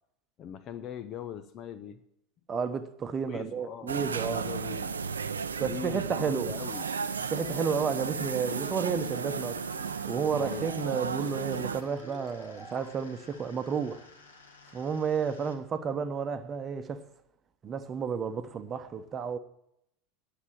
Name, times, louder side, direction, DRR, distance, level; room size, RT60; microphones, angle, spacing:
voice 1, 0.4-2.0 3.3-5.0 5.6-6.8 10.4-10.7, left 9 dB, 40° left, 0.7 m, -41 dB
voice 2, 2.5-4.4 5.6-6.5 7.3-9.6 10.0-14.1 14.7-17.0 17.6-19.4, right 6 dB, 30° right, 1.0 m, -32 dB
sound 1, 3.9-11.8, right 6 dB, 80° right, 0.5 m, -34 dB
sound 2, 6.1-6.4 6.7-7.0 7.3-7.6 7.9-8.2 8.5-8.8 9.1-9.4 9.7-10.0 10.3-13.0, right 1 dB, 5° right, 0.9 m, -50 dB
sound 3, 6.7-15.5, left 4 dB, 75° left, 1.6 m, -53 dB
9.7 x 6.9 x 8.8 m
figure-of-eight pair, 80°, 0 cm